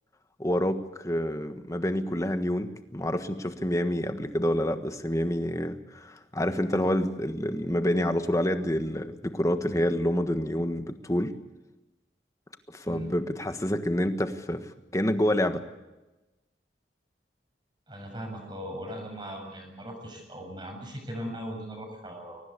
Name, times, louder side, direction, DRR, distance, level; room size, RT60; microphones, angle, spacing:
voice 1, 0.4-11.3 12.7-15.6, equal, 20° left, 8 dB, 1.4 m, -28 dB
voice 2, 17.9-22.4, equal, 25° right, 2 dB, 7.2 m, -39 dB
23.0 x 19.0 x 8.4 m, 1.0 s
head